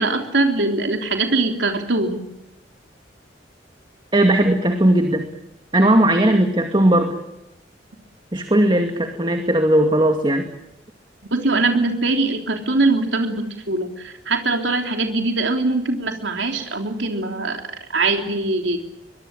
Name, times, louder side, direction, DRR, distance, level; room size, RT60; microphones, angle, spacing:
voice 1, 0.0-2.2 11.3-17.6 17.9-18.8, right 3 dB, 85° right, 4 dB, 3.4 m, -22 dB
voice 2, 4.1-5.3 5.7-7.2 8.3-10.5, right 1 dB, 25° right, 5 dB, 2.3 m, -17 dB
23.5 x 23.5 x 8.8 m, 0.84 s
head